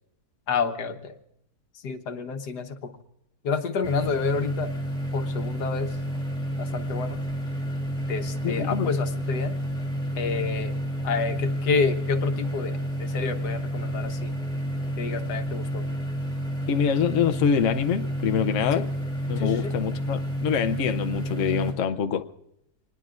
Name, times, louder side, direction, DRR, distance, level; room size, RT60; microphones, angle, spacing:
voice 1, 0.5-1.1 1.8-2.9 3.4-4.7 5.1-5.9 6.6-7.2 8.1-9.6 10.2-10.7 11.0-14.4 15.0-15.8 18.7-18.8 19.4-19.7, left 5 dB, 85° left, 7 dB, 1.6 m, -29 dB
sound 1, 3.8-21.7, equal, 5° left, 2.8 m, -30 dB
voice 2, 8.4-8.9 16.7-18.9 19.3-22.3, left 7 dB, 60° left, 7 dB, 1.0 m, -25 dB
27.0 x 20.0 x 2.5 m, 0.79 s
omnidirectional pair, 1.7 m